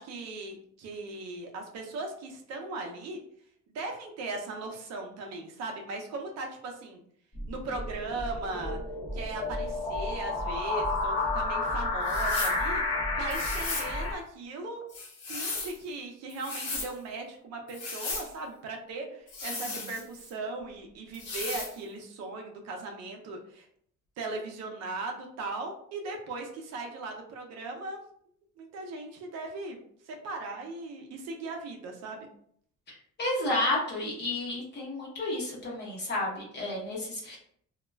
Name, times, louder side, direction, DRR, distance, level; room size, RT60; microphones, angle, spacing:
voice 1, 0.0-3.2 3.7-7.0 7.5-8.8 9.1-14.8 15.3-23.7 24.2-28.0 28.6-29.8 30.1-32.3, right 3 dB, 55° right, 2 dB, 0.5 m, -38 dB
sound 1, 7.3-14.1, left 2 dB, 20° left, 0.4 m, -31 dB
sound 2, 12.0-12.6 13.3-13.9 14.9-15.8 16.3-16.9 17.7-18.3 19.3-20.3 21.1-21.7, left 3 dB, 75° left, 0.9 m, -36 dB
voice 2, 32.9-37.4, left 2 dB, 35° left, -4 dB, 0.9 m, -31 dB
2.2 x 2.1 x 3.2 m, 0.63 s
cardioid pair, 180°, 31 cm